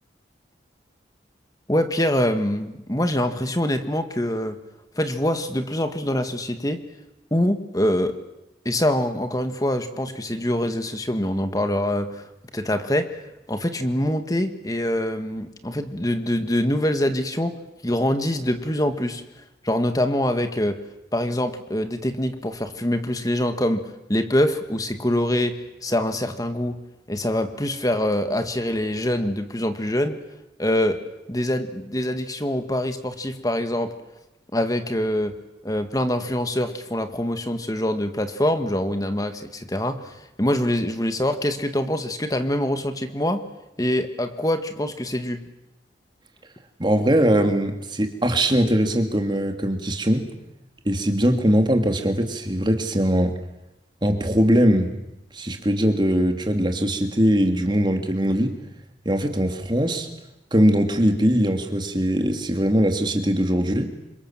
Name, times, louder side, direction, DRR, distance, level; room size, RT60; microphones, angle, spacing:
voice 1, 1.7-4.6 5.0-6.8 7.3-8.1 8.7-17.6 17.8-19.2 19.6-20.8 21.1-26.8 27.1-30.2 30.6-31.0 31.3-33.9 34.5-35.3 35.6-43.4 43.8-45.4, left 1 dB, 20° left, 8 dB, 1.9 m, -24 dB
voice 2, 46.8-50.3 50.8-53.3 54.0-54.9 55.3-58.5 59.0-60.1 60.5-63.9, equal, 25° right, 5 dB, 2.9 m, -21 dB
28.0 x 26.0 x 7.6 m, 0.91 s
head